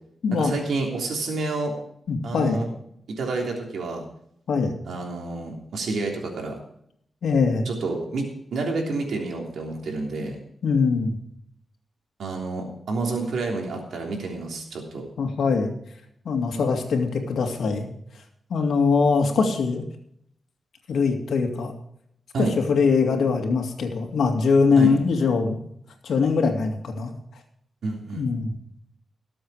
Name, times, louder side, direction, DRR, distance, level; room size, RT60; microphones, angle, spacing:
voice 1, 0.3-1.7 2.2-2.7 3.1-4.0 4.8-6.5 7.6-10.4 12.2-15.1 22.3-22.5 24.8-24.9 27.8-28.2, right 3 dB, 85° right, 0 dB, 3.3 m, -29 dB
voice 2, 2.1-2.6 4.5-4.7 7.2-7.7 10.6-11.2 15.2-15.7 16.2-17.9 18.5-19.9 20.9-21.7 22.4-25.6 26.0-27.1 28.1-28.5, left 4 dB, 85° left, 3 dB, 2.4 m, -22 dB
19.0 x 7.8 x 4.9 m, 0.71 s
wide cardioid pair, 120°, 0 cm